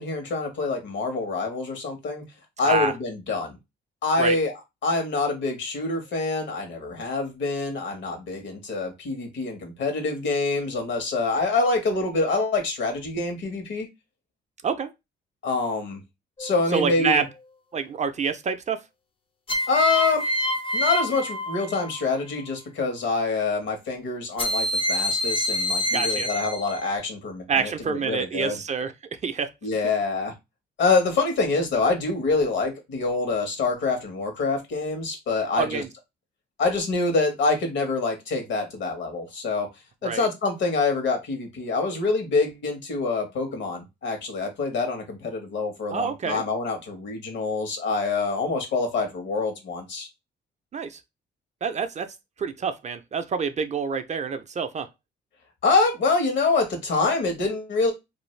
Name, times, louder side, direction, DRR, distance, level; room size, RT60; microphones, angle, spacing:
voice 1, 0.0-2.2 2.6-3.6 4.0-4.5 4.8-13.9 15.4-16.0 16.4-17.2 19.7-20.3 20.7-28.6 29.6-30.3 30.8-35.8 36.6-39.7 40.0-50.1 55.6-57.9, left 3 dB, 65° left, 1.1 m, -26 dB
sound 1, 16.4-17.0 19.5-22.1 24.4-27.0, left 1 dB, 25° left, 0.5 m, -27 dB
voice 2, 16.7-17.3 17.7-18.8 25.9-26.3 27.5-28.9 29.2-29.5 35.6-35.9 40.0-40.3 45.9-46.4 50.7-51.0 51.6-52.1 52.4-54.9, right 5 dB, 35° right, 0.4 m, -27 dB
2.5 x 2.3 x 3.1 m
cardioid pair, 90°, 20 cm